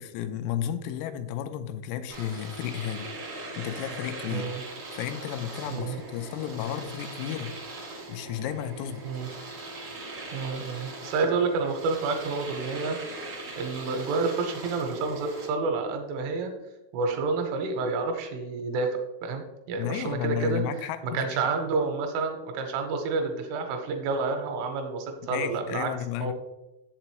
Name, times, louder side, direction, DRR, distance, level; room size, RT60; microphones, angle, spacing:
voice 1, 0.0-3.1 3.5-4.5 4.9-7.6 8.1-9.1 19.7-21.3 25.3-26.3, left 10 dB, 90° left, 9 dB, 3.3 m, -33 dB
Domestic sounds home sounds, 2.1-15.5, right 2 dB, 65° right, 1.4 m, -40 dB
voice 2, 4.3-4.6 5.7-6.0 9.0-9.3 10.3-13.0 13.6-16.5 16.9-25.9 26.2-26.3, right 4 dB, 80° right, 4 dB, 3.2 m, -29 dB
7.6 x 7.6 x 3.0 m, 0.99 s
omnidirectional pair, 5.9 m